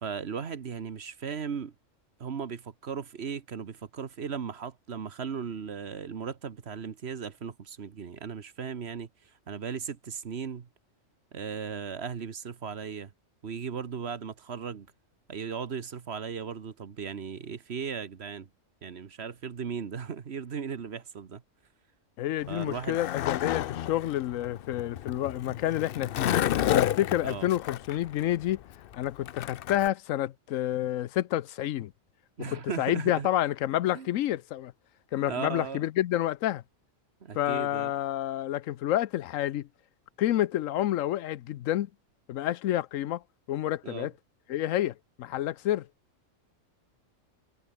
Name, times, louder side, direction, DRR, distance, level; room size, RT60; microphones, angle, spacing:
voice 1, 0.0-1.7 2.2-9.1 9.5-10.7 11.3-13.1 13.4-14.9 15.3-18.5 18.8-21.4 22.5-23.0 27.2-27.5 32.4-33.3 33.9-34.1 35.3-35.8 37.2-37.9 43.8-44.1, right 6 dB, 55° right, 1.4 m, -37 dB
voice 2, 22.2-26.3 26.7-28.6 28.9-31.9 32.4-34.7 35.1-36.6 37.3-39.7 40.2-41.9 42.3-43.2 43.5-44.1 44.5-45.9, left 13 dB, 85° left, 1.0 m, -29 dB
Skateboard, 22.4-29.9, left 11 dB, 60° left, 0.6 m, -31 dB
omnidirectional pair, 1.3 m